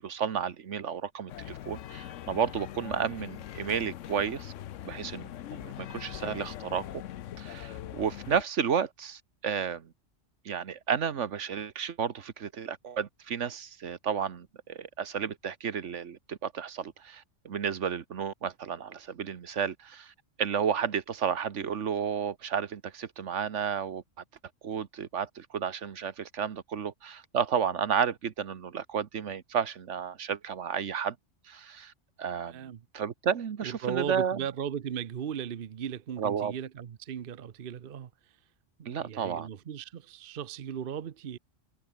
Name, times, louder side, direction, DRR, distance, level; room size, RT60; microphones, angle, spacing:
voice 1, 0.0-4.5 4.8-7.0 7.4-9.9 10.4-20.1 20.4-24.0 24.6-31.1 31.5-31.9 32.2-34.4 36.2-36.5 38.8-39.5, right 7 dB, 70° right, 1.4 m, -32 dB
sound 1, 1.3-8.4, left 11 dB, 80° left, 1.1 m, -42 dB
voice 2, 32.5-32.8 33.6-38.3 38.8-41.4, right 8 dB, 50° right, 0.9 m, -37 dB
omnidirectional pair, 1.3 m